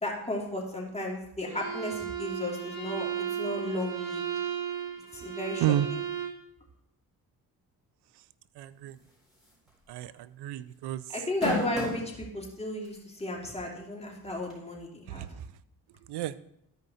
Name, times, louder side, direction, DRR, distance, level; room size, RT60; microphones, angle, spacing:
voice 1, 0.0-4.2 5.1-6.0 11.1-15.3, left 1 dB, 15° left, -2 dB, 2.6 m, -34 dB
Bowed string instrument, 1.5-6.4, right 9 dB, 55° right, 2.4 m, -35 dB
voice 2, 8.6-8.9 9.9-11.0 15.1-15.3 16.1-16.3, right 13 dB, 85° right, 17 dB, 0.6 m, -30 dB
sound 1, 9.5-9.7 10.0-10.1 11.1-12.1 12.8-12.9 14.5-14.6, left 2 dB, ahead, 4.3 m, -31 dB
13.0 x 5.2 x 4.1 m, 0.77 s
cardioid pair, 75°, 39 cm